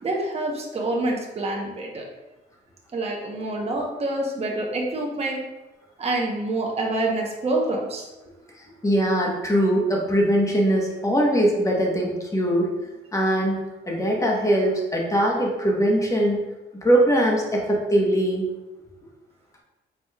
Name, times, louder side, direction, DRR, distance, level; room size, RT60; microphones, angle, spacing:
voice 1, 0.0-2.1 2.9-5.4 6.0-8.1, right 2 dB, 30° right, -1 dB, 0.9 m, -27 dB
voice 2, 8.8-12.7 13.1-13.6 13.9-16.4 16.8-18.5, right 1 dB, 15° left, -1 dB, 1.1 m, -21 dB
4.8 x 4.1 x 2.3 m, 1.1 s
cardioid pair, 90°, 20 cm